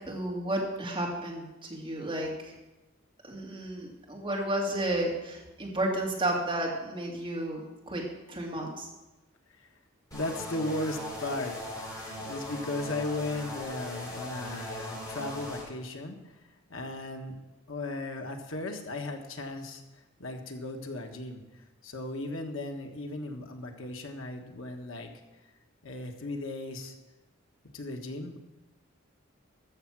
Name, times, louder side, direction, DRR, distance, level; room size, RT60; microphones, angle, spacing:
voice 1, 0.0-2.5 3.2-8.0 8.3-8.9, right 1 dB, 25° right, -2 dB, 2.5 m, -32 dB
voice 2, 10.1-11.9 12.2-16.4 16.7-17.3 17.7-21.4 21.8-25.1 25.8-26.9 27.7-28.4, left 2 dB, 85° left, 4 dB, 1.4 m, -36 dB
sound 1, 10.1-15.6, left 1 dB, 20° left, 4.0 m, -39 dB
14.0 x 7.0 x 6.0 m, 1.0 s
head